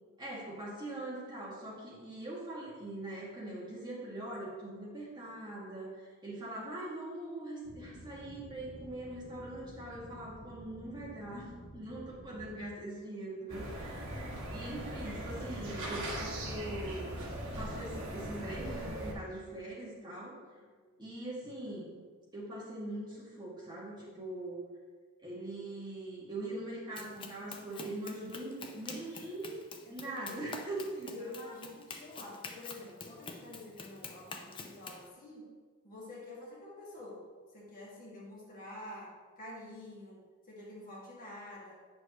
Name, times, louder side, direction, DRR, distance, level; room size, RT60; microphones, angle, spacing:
voice 1, 0.2-17.2 17.5-20.4 21.0-22.0 22.3-24.7 25.2-29.6 29.9-31.4, right 1 dB, 20° right, -6 dB, 1.9 m, -42 dB
sound 1, 7.6-12.6, equal, 80° left, 1.1 m, -51 dB
sound 2, 13.5-19.1, right 1 dB, 65° right, 1.7 m, -40 dB
voice 2, 20.7-21.1 29.8-30.4 31.1-35.5 35.8-41.8, left 2 dB, 40° left, -6 dB, 2.1 m, -48 dB
Run, 27.0-35.1, left 4 dB, 25° left, 0.5 m, -47 dB
9.4 x 6.4 x 3.0 m, 1.5 s
head